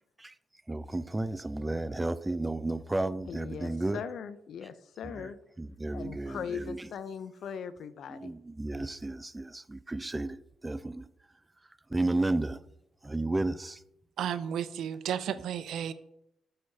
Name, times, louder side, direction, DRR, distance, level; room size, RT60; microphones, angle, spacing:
voice 1, 0.7-4.0 5.0-5.3 5.6-6.9 8.1-10.4 10.6-11.1 11.9-12.6 13.0-13.8, right 2 dB, 15° right, 0.4 m, -32 dB
voice 2, 3.2-5.4 5.9-8.3, left 7 dB, 65° left, 0.5 m, -40 dB
voice 3, 14.2-15.9, right 9 dB, 75° right, 0.5 m, -33 dB
7.5 x 6.4 x 2.7 m
cardioid pair, 90°, 0 cm